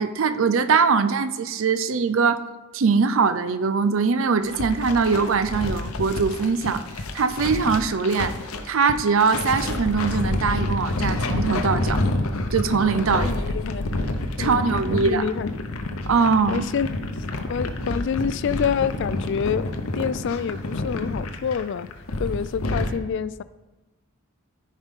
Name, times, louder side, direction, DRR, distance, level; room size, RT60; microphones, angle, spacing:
voice 1, 0.0-2.4 2.7-6.8 7.1-8.3 8.7-12.0 12.5-13.3 14.4-15.2 16.1-16.6, right 5 dB, 60° right, 11 dB, 0.5 m, -22 dB
sound 1, 4.4-22.9, left 2 dB, 75° left, 0.8 m, -28 dB
voice 2, 13.1-13.9 14.4-15.7 16.5-16.9 17.5-19.7 20.0-21.9 22.2-23.4, left 7 dB, 55° left, 16 dB, 0.3 m, -27 dB
13.5 x 5.2 x 3.7 m, 1.1 s
head